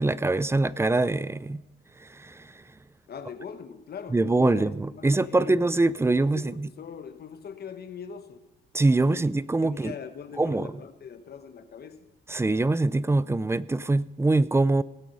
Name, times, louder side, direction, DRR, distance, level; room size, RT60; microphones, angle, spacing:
voice 1, 0.0-1.6 2.1-2.5 4.1-6.7 8.7-9.9 10.4-10.7 12.3-14.8, right 2 dB, 15° right, 0.4 m, -24 dB
voice 2, 3.1-5.6 6.3-8.4 9.0-9.2 9.6-12.1, left 7 dB, 55° left, 1.2 m, -42 dB
19.0 x 8.5 x 5.4 m
cardioid pair, 90°, 20 cm